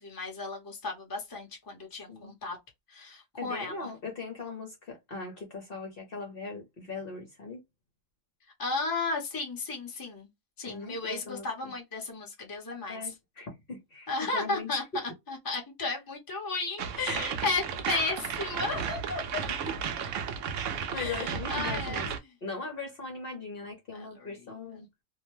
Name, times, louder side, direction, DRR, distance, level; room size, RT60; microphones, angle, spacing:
voice 1, 0.0-2.6 2.9-3.9 8.6-10.3 10.6-13.1 14.1-19.2 20.9-22.2 23.9-24.8, left 3 dB, 20° left, 0.8 m, -34 dB
voice 2, 3.4-7.6 10.7-11.7 12.9-14.7 19.8-19.9 20.9-22.1 22.4-24.9, left 4 dB, 50° left, 1.0 m, -39 dB
sound 1, 16.8-22.2, right 7 dB, 70° right, 0.9 m, -33 dB
2.6 x 2.1 x 3.0 m
omnidirectional pair, 1.4 m